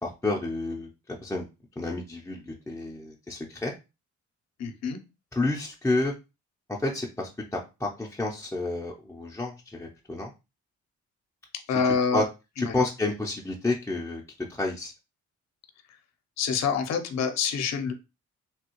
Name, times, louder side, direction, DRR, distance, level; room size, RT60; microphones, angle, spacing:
voice 1, 0.0-1.5 1.8-3.7 5.3-6.1 6.8-10.3 12.1-12.2 12.6-14.2 14.5-14.9, left 2 dB, 10° left, -2 dB, 0.5 m, -30 dB
voice 2, 4.6-5.0 11.7-12.2 12.6-12.8 16.4-17.9, left 6 dB, 60° left, 7 dB, 0.7 m, -26 dB
3.4 x 2.3 x 2.9 m, 0.27 s
cardioid pair, 90°, 30 cm